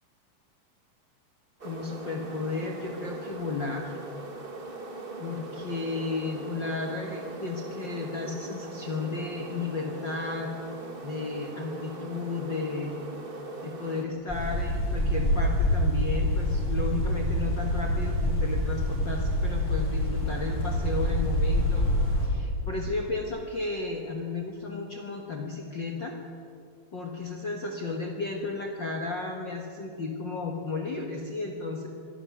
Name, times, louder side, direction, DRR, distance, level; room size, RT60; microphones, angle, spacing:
voice 1, 1.6-4.0 5.2-10.5 11.0-13.0 13.6-21.9 22.2-26.2 26.9-31.9, left 3 dB, 45° left, 1 dB, 1.6 m, -33 dB
sound 1, 1.6-14.1, right 3 dB, 35° right, 0.8 m, -40 dB
sound 2, 14.3-22.3, equal, 10° left, 5.8 m, -26 dB
24.0 x 13.0 x 9.5 m, 2.4 s
omnidirectional pair, 3.9 m